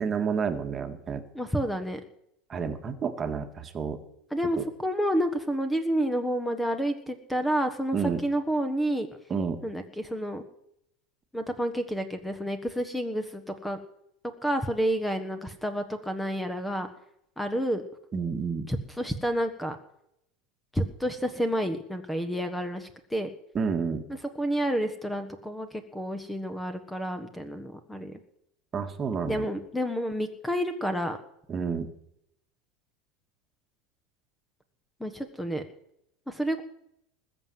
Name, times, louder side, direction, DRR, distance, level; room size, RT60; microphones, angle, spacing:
voice 1, 0.0-1.2 2.5-4.0 4.5-4.7 7.9-8.2 9.3-9.6 18.1-18.7 23.5-24.1 28.7-29.5 31.5-31.9, right 6 dB, 25° right, 7 dB, 1.8 m, -30 dB
voice 2, 1.3-2.0 4.3-9.1 9.6-10.4 11.3-13.8 14.4-16.9 17.4-17.8 18.7-19.8 20.7-23.3 24.4-28.1 29.3-31.2 35.0-35.6 36.3-36.6, equal, 5° left, 9 dB, 1.5 m, -29 dB
20.5 x 7.7 x 7.8 m, 0.75 s
supercardioid pair, 135°, 0 cm